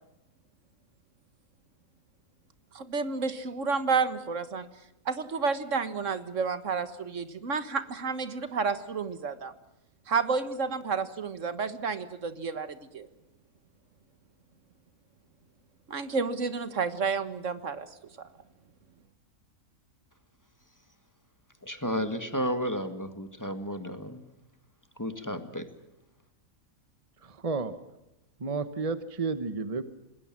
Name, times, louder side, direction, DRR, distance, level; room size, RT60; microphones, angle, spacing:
voice 1, 2.7-4.7 5.1-9.5 10.1-13.1 15.9-18.3, right 5 dB, 60° right, 12 dB, 1.8 m, -30 dB
voice 2, 21.6-24.2 25.0-25.7, equal, 15° left, 9 dB, 1.8 m, -32 dB
voice 3, 27.2-27.8 28.4-29.8, right 4 dB, 25° right, 11 dB, 1.1 m, -31 dB
26.5 x 20.5 x 7.5 m, 0.90 s
omnidirectional pair, 1.5 m